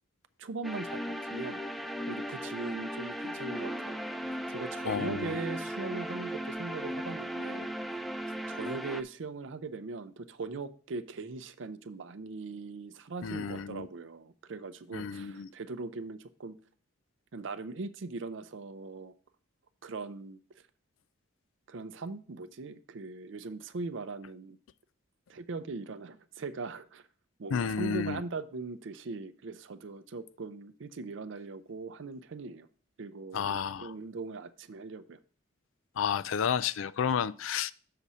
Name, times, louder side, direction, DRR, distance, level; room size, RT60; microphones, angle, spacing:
voice 1, 0.4-1.6 2.1-4.0 4.3-8.0 8.5-16.6 17.3-19.1 19.8-20.4 21.7-24.6 25.3-27.1 27.4-32.7 33.0-35.2, right 3 dB, 60° right, 0.5 m, -40 dB
sound 1, 0.6-9.0, equal, ahead, 0.3 m, -37 dB
voice 2, 4.9-5.4 13.2-13.9 14.9-15.5 27.5-28.2 33.3-33.9 36.0-37.7, left 7 dB, 70° left, 0.4 m, -31 dB
6.7 x 4.1 x 6.0 m
head